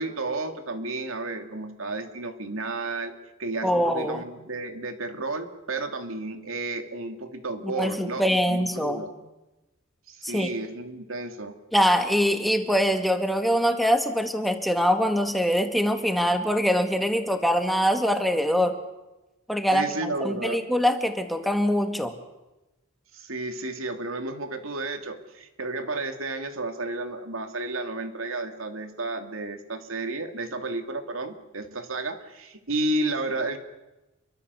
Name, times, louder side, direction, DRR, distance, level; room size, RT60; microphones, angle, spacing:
voice 1, 0.0-3.1 3.4-9.1 10.1-11.6 19.7-20.7 23.1-33.6, right 2 dB, 85° right, 6 dB, 2.5 m, -32 dB
voice 2, 3.6-4.2 7.6-9.1 10.2-10.5 11.7-18.8 19.5-22.1, equal, ahead, 5 dB, 2.0 m, -23 dB
28.5 x 23.5 x 6.9 m, 1.0 s
head